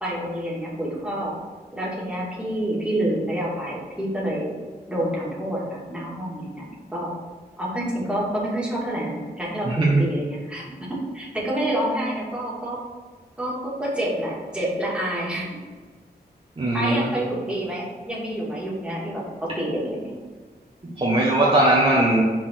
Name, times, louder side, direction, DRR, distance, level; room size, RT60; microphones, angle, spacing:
voice 1, 0.0-1.3 1.7-4.5 4.9-6.6 6.9-7.1 7.6-12.8 13.4-15.5 16.7-20.1, right 1 dB, 5° right, -6 dB, 2.4 m, -28 dB
voice 2, 9.6-10.0 16.6-17.1 20.8-22.2, right 1 dB, 30° right, -6 dB, 1.4 m, -19 dB
6.1 x 4.5 x 6.0 m, 1.5 s
wide cardioid pair, 125°, 17 cm